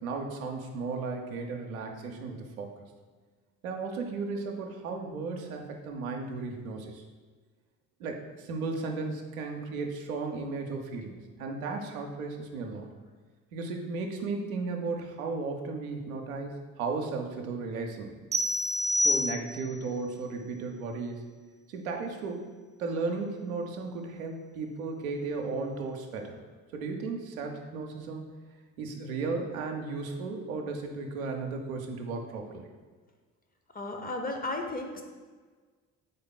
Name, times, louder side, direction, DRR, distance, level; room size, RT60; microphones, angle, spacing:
voice 1, 0.0-2.7 3.6-7.0 8.0-12.9 13.5-18.1 19.0-21.3 21.7-22.5 22.8-26.4 26.7-28.2 28.8-32.7, right 4 dB, 85° right, 2 dB, 0.5 m, -35 dB
sound 1, 18.3-19.9, left 1 dB, 20° right, 0.4 m, -28 dB
voice 2, 33.7-35.0, left 2 dB, 20° left, 4 dB, 0.6 m, -34 dB
3.9 x 3.5 x 3.8 m, 1.5 s
hypercardioid pair, 45°, 41 cm